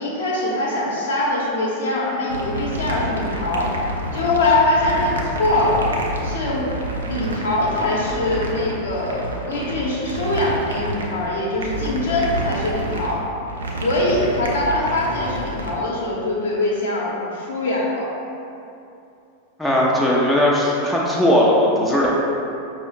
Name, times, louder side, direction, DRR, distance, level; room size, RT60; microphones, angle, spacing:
voice 1, 0.0-3.7 4.1-5.9 6.2-13.2 13.8-18.1, left 2 dB, 60° left, -4 dB, 0.7 m, -23 dB
sound 1, 2.3-15.7, right 1 dB, 70° right, 0.4 m, -29 dB
voice 2, 19.6-22.1, left 1 dB, ahead, -5 dB, 0.5 m, -18 dB
5.3 x 2.0 x 3.1 m, 2.7 s
figure-of-eight pair, 90°, 0 cm